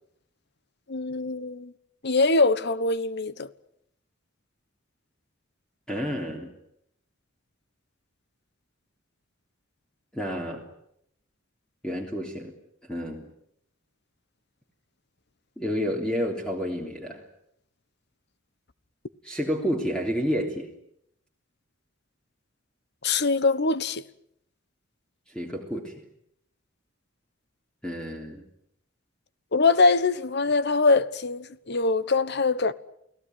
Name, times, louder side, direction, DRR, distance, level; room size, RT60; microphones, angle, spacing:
voice 1, 0.9-1.7 2.0-3.5 23.0-24.0 29.5-32.7, left 3 dB, 60° left, 1.2 m, -23 dB
voice 2, 5.9-6.5 10.1-10.7 11.8-12.6 12.9-13.3 15.6-17.2 19.2-20.7 25.3-25.9 27.8-28.4, equal, 5° left, 3.4 m, -30 dB
29.5 x 18.0 x 9.5 m
head